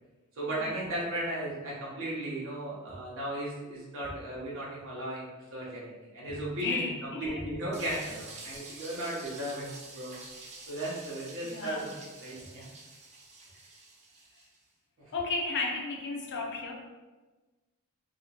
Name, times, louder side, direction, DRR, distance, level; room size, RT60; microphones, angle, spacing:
voice 1, 0.4-6.9 7.2-10.1 10.7-12.7 15.0-15.1, right 1 dB, 65° right, -5 dB, 0.9 m, -36 dB
voice 2, 6.6-7.5 7.8-8.0 10.8-10.9 11.4-11.9 15.1-16.8, left 3 dB, 55° left, 1 dB, 0.5 m, -34 dB
sound 1, 7.7-14.6, right 3 dB, 30° right, 0.4 m, -48 dB
2.8 x 2.0 x 2.8 m, 1.2 s
head